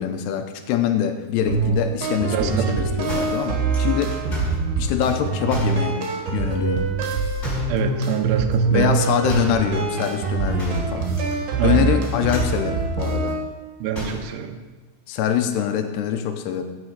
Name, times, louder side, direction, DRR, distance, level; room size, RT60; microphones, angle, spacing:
voice 1, 0.0-4.2 4.8-6.0 6.3-6.9 8.7-11.1 11.6-13.4 15.1-16.6, left 9 dB, 90° left, 7 dB, 2.9 m, -24 dB
sound 1, 1.5-13.4, right 4 dB, 70° right, 3.4 m, -24 dB
voice 2, 2.3-2.7 7.7-8.9 11.6-11.9 13.8-14.5, right 8 dB, 90° right, 7 dB, 3.1 m, -25 dB
sound 2, 3.1-4.6 5.5-5.9 7.4-7.8 9.3-9.6 10.6-11.4 11.6-11.9 12.2-12.6 13.9-14.3, left 1 dB, 20° left, 4.3 m, -33 dB
16.0 x 7.3 x 4.9 m, 1.3 s
omnidirectional pair, 4.8 m